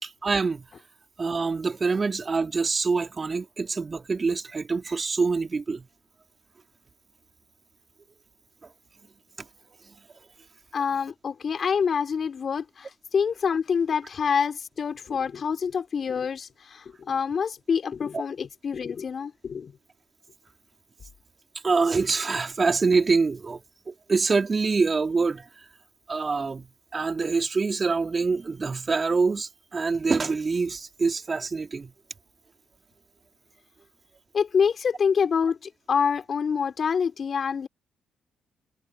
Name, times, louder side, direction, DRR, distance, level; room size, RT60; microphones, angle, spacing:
voice 1, 0.0-0.6 1.2-5.9 21.6-23.6 23.9-25.5 26.1-26.7 26.9-31.9, right 4 dB, 35° right, 3.3 m, -25 dB
voice 2, 10.7-19.7 34.3-37.7, left 6 dB, 50° left, 3.9 m, -26 dB
hypercardioid pair, 45°, 0 cm